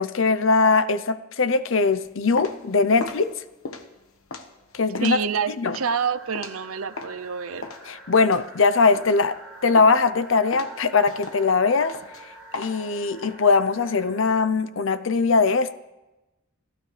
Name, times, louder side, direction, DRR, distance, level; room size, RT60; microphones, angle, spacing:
voice 1, 0.0-3.3 4.7-5.2 5.6-5.8 7.9-9.3 9.6-12.0 12.5-15.7, left 4 dB, 65° left, 13 dB, 0.7 m, -21 dB
sound 1, 2.0-7.2 7.6-9.4 9.8-10.1 10.5-13.3, left 3 dB, 80° left, 1.3 m, -38 dB
voice 2, 5.0-7.7, right 6 dB, 80° right, 15 dB, 0.6 m, -27 dB
sound 2, 5.8-14.5, right 3 dB, 5° right, 5.3 m, -46 dB
29.5 x 12.5 x 3.3 m, 1.0 s
head